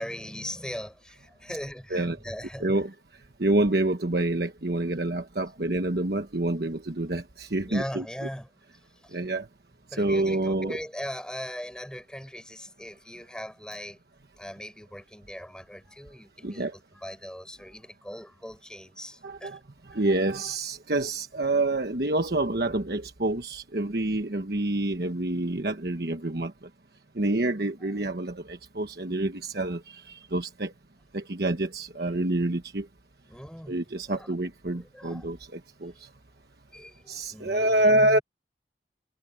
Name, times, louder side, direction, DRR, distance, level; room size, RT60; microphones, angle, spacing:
voice 1, 0.0-2.7 7.6-8.5 9.0-9.2 9.9-14.0 14.4-19.6 19.9-20.0 32.1-32.2 33.3-33.8 34.1-34.3 34.7-35.3 36.7-38.2, equal, 5° left, 5.7 m, -40 dB
voice 2, 2.6-2.9 3.4-8.0 9.1-9.5 10.0-10.8 16.4-16.7 19.2-19.6 19.9-26.5 27.1-30.7 31.1-32.9 33.7-36.1 37.1-38.2, right 2 dB, 60° right, 1.2 m, -27 dB
head